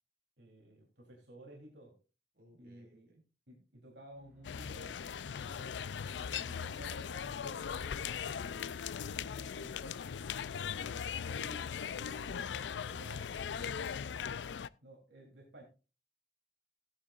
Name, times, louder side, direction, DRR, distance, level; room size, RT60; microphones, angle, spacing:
voice 1, 0.4-2.0 2.6-3.1 3.5-8.8 9.0-9.9 10.7-13.6 14.8-15.6, right 1 dB, 85° right, -1 dB, 3.5 m, -55 dB
voice 2, 2.3-3.2 10.6-11.0 12.7-14.1, right 1 dB, 55° right, 1 dB, 5.2 m, -60 dB
sound 1, 4.0-11.3, right 1 dB, 10° right, 4.7 m, -68 dB
sound 2, 4.4-14.7, left 7 dB, 90° left, 0.4 m, -39 dB
16.0 x 10.0 x 2.5 m, 0.31 s
head